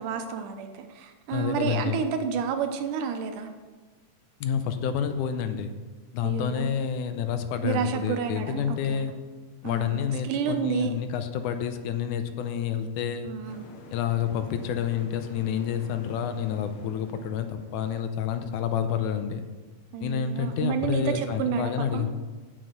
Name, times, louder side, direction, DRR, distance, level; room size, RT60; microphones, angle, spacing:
voice 1, 0.0-3.5 6.2-6.7 7.6-9.0 9.6-10.9 13.2-13.7 19.9-22.1, right 6 dB, 90° right, 7 dB, 2.5 m, -30 dB
voice 2, 1.3-2.0 4.4-5.8 6.1-9.1 9.6-13.3 13.9-19.4 20.0-22.1, left 8 dB, 85° left, 8 dB, 2.2 m, -29 dB
sound 1, 13.4-18.3, left 3 dB, 60° left, 1.5 m, -48 dB
8.2 x 7.7 x 6.5 m, 1.3 s
omnidirectional pair, 3.5 m